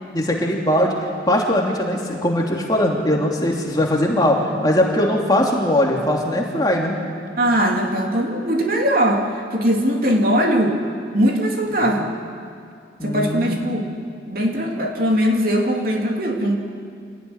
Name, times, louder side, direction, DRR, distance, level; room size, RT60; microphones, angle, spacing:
voice 1, 0.1-0.9 1.3-6.9 13.0-13.6, left 1 dB, 20° left, -1 dB, 3.0 m, -20 dB
voice 2, 7.4-10.8 11.1-12.1 13.0-13.9 14.3-16.6, equal, 50° right, 1 dB, 3.0 m, -20 dB
26.5 x 18.0 x 10.0 m, 2.4 s
head